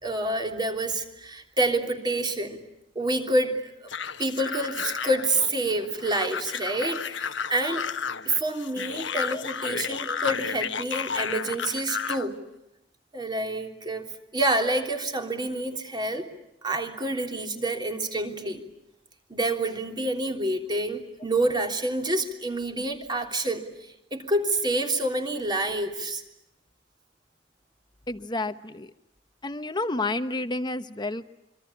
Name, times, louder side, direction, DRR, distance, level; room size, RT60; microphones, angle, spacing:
voice 1, 0.0-2.6 2.9-3.7 4.2-7.9 8.2-12.4 13.1-14.1 14.3-16.3 16.6-18.6 19.3-23.7 24.1-26.2, right 1 dB, 25° right, 4 dB, 3.3 m, -28 dB
sound 1, 3.9-12.3, left 6 dB, 80° left, 1.2 m, -32 dB
voice 2, 9.1-9.4 9.8-10.2 28.1-28.9 29.4-31.2, left 2 dB, 25° left, 11 dB, 1.1 m, -31 dB
26.0 x 24.5 x 8.7 m, 0.86 s
head